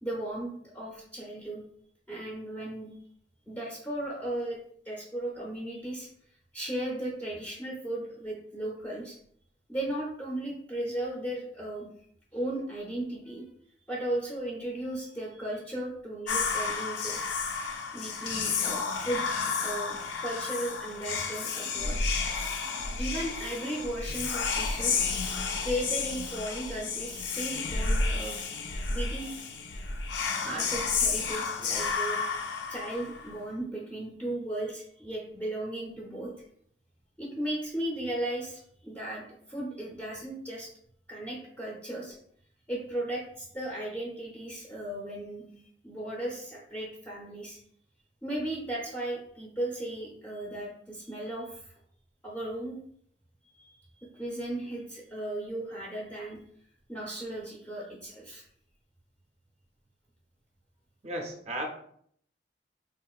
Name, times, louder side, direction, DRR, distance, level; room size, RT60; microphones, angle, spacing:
voice 1, 0.0-1.6 2.1-2.9 3.5-4.6 4.8-6.1 6.5-9.2 9.7-11.9 12.3-13.4 13.9-17.6 17.9-19.2 19.6-20.0 20.2-22.0 23.0-25.0 25.6-28.4 28.9-29.4 30.1-32.2 32.7-36.3 37.2-40.7 41.1-42.2 42.7-47.6 48.2-51.7 52.2-52.8 53.6-53.7 54.1-56.4 56.9-58.4, right 1 dB, 10° left, -5 dB, 0.6 m, -36 dB
Whispering, 16.3-33.4, left 4 dB, 90° left, 0.4 m, -31 dB
voice 2, 61.0-61.7, right 1 dB, 40° right, 3 dB, 0.5 m, -34 dB
3.7 x 2.4 x 2.3 m, 0.65 s
head